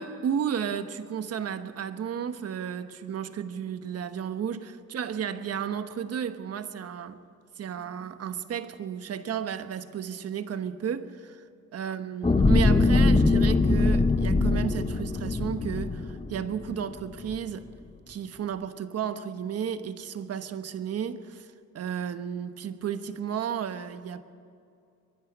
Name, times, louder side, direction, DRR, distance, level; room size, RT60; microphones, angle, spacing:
voice 1, 0.0-7.2 7.6-11.4 11.7-17.7 18.1-24.2, right 8 dB, 55° right, 1.2 m, -33 dB
sound 1, 12.2-16.7 17.2-17.4, left 3 dB, 20° left, 1.2 m, -22 dB
24.0 x 11.0 x 9.6 m
cardioid pair, 90°, 30 cm